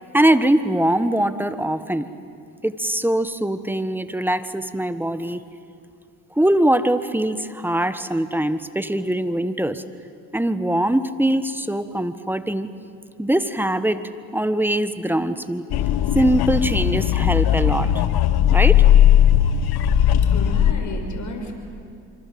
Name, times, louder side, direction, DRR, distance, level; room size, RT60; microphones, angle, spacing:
voice 1, 0.1-2.1 2.6-5.4 6.3-9.8 10.3-12.7 13.2-14.0 14.3-15.6 16.1-17.9 18.5-18.9, right 1 dB, 5° right, 12 dB, 1.4 m, -22 dB
sound 1, 15.7-20.7, left 10 dB, 65° left, 1.2 m, -17 dB
voice 2, 20.3-21.5, left 2 dB, 45° left, 3 dB, 6.1 m, -32 dB
26.0 x 25.0 x 7.8 m, 2.4 s
supercardioid pair, 65°, 40 cm